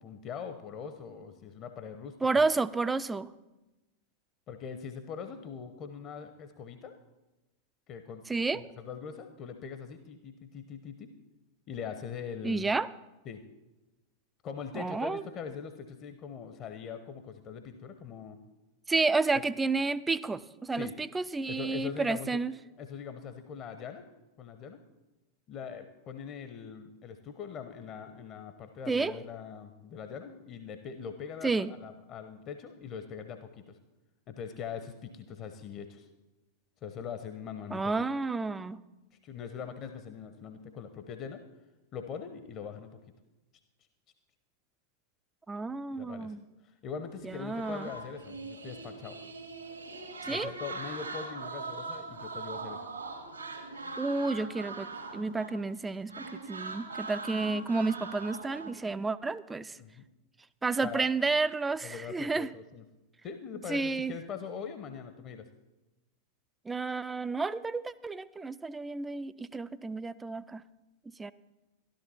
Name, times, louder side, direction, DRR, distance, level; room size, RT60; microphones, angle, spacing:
voice 1, 0.0-2.4 4.5-6.9 7.9-8.2 8.8-11.1 11.7-12.7 13.3-13.4 14.4-18.4 20.8-20.9 21.5-22.4 22.8-24.0 24.4-24.8 25.5-33.8 34.3-36.1 36.8-38.0 39.2-41.4 41.9-43.0 46.0-46.4 46.6-49.2 50.2-52.8 59.8-60.0 60.8-61.1 61.8-62.8 63.2-65.5, left 7 dB, 35° left, 8 dB, 0.9 m, -42 dB
voice 2, 2.2-3.3 8.3-8.6 12.4-12.9 14.7-15.2 18.9-22.5 28.9-29.1 31.4-31.7 37.7-38.8 45.5-46.4 47.2-47.9 50.2-50.5 54.0-59.8 60.6-62.5 63.7-64.1 66.7-70.6 71.2-71.3, right 3 dB, 10° right, 14 dB, 0.4 m, -31 dB
sound 1, 47.1-55.8 56.1-58.7, right 3 dB, 80° right, 1.7 m, -41 dB
13.0 x 12.5 x 4.3 m, 1.0 s
figure-of-eight pair, 90°, 0 cm